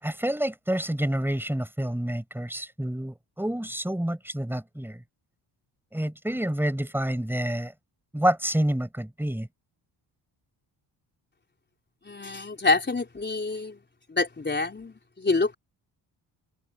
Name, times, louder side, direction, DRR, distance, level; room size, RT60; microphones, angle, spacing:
voice 1, 0.0-5.0 5.9-7.7 8.1-9.5, right 1 dB, 5° right, 7.6 m, -28 dB
voice 2, 12.0-13.8 14.1-15.5, left 3 dB, 25° left, 4.3 m, -27 dB
cardioid pair, 95°, 44 cm